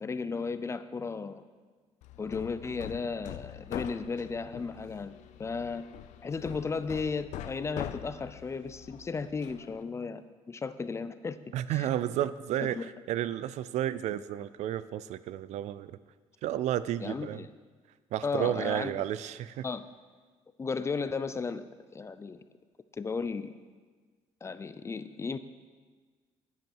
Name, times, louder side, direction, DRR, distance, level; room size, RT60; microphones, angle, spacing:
voice 1, 0.0-1.4 2.2-5.8 6.2-11.4 11.7-11.9 12.8-12.9 17.0-17.5 18.2-19.1 19.6-19.9 20.6-21.6 21.9-22.4 23.0-23.5 24.4-25.4, left 4 dB, 25° left, 12 dB, 0.4 m, -35 dB
Hammer, 2.0-9.8, left 12 dB, 85° left, 0.5 m, -44 dB
voice 2, 11.5-16.0 16.4-17.4 18.1-19.7, right 12 dB, 80° right, 16 dB, 0.4 m, -32 dB
10.0 x 9.4 x 4.6 m, 1.4 s
cardioid pair, 130°, 12 cm